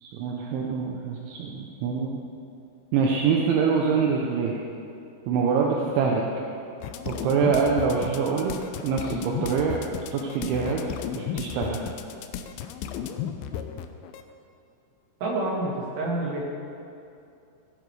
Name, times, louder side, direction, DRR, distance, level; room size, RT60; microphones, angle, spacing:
voice 1, 0.0-2.2 2.9-4.6 5.3-6.2 7.1-8.6 8.8-9.8 10.1-10.8 11.1-11.8, right 5 dB, 75° right, -1 dB, 3.2 m, -25 dB
sound 1, 6.8-14.2, left 9 dB, 85° left, 2.4 m, -34 dB
voice 2, 15.2-16.6, right 2 dB, 60° right, -4 dB, 4.1 m, -28 dB
16.0 x 10.5 x 4.8 m, 2.6 s
omnidirectional pair, 5.7 m